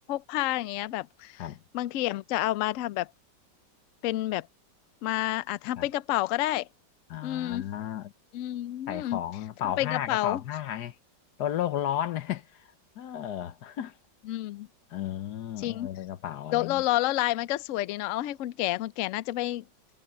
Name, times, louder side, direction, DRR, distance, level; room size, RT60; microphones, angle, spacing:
voice 1, 0.1-1.4 1.7-3.1 4.0-4.5 5.0-6.7 7.2-7.7 8.3-9.2 9.8-10.4 14.3-14.7 15.6-15.9 16.5-19.7, left 16 dB, 85° left, 0.7 m, -29 dB
voice 2, 7.1-8.1 8.9-11.0 11.4-14.0 14.9-16.8, left 11 dB, 65° left, 1.4 m, -33 dB
omnidirectional pair, 2.0 m